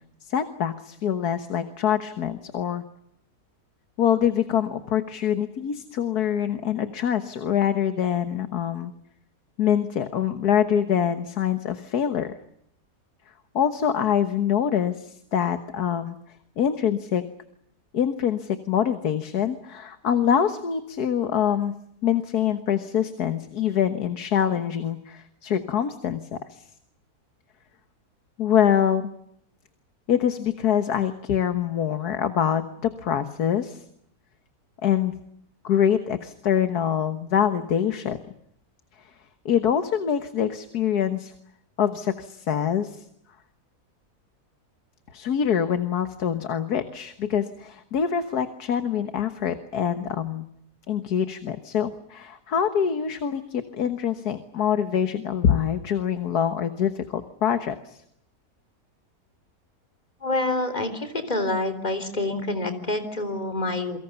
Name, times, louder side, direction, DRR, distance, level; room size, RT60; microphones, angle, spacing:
voice 1, 0.2-2.8 4.0-8.9 9.6-12.3 13.6-16.2 16.6-17.2 17.9-21.7 22.0-26.7 28.4-29.1 30.1-33.8 34.8-35.2 35.6-38.2 39.5-41.3 41.8-43.1 45.1-50.5 50.9-58.0, left 8 dB, 75° left, 9 dB, 1.8 m, -25 dB
voice 2, 60.2-64.0, left 2 dB, 25° left, 9 dB, 3.7 m, -27 dB
29.0 x 23.5 x 7.0 m, 0.74 s
omnidirectional pair, 1.7 m